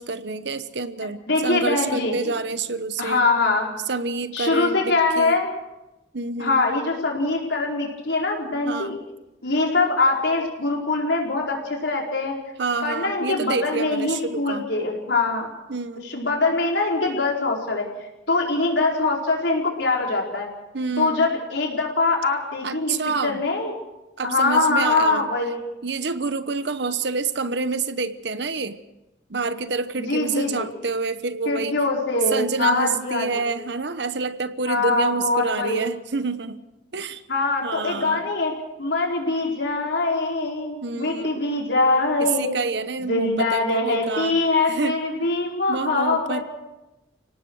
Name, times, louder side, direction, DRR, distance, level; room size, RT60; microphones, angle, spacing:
voice 1, 0.0-3.3 3.9-5.4 6.1-6.6 8.7-9.0 12.6-14.6 15.7-16.0 20.7-21.3 22.6-23.4 24.2-25.3 25.8-28.8 29.3-31.8 32.3-36.6 36.9-37.2 37.6-38.3 40.8-41.4 42.2-44.4 44.7-45.0 45.7-46.4, right 4 dB, 70° right, 12 dB, 1.0 m, -28 dB
voice 2, 1.3-2.1 3.0-3.7 4.3-5.5 6.4-9.0 9.4-12.4 12.8-15.5 16.0-17.9 18.3-20.5 21.0-23.0 23.2-23.7 24.2-25.6 30.0-30.7 31.4-33.5 34.6-35.8 37.3-38.5 38.8-42.6 43.1-46.4, left 3 dB, 75° left, -1 dB, 4.8 m, -23 dB
30.0 x 18.5 x 4.8 m, 0.97 s
head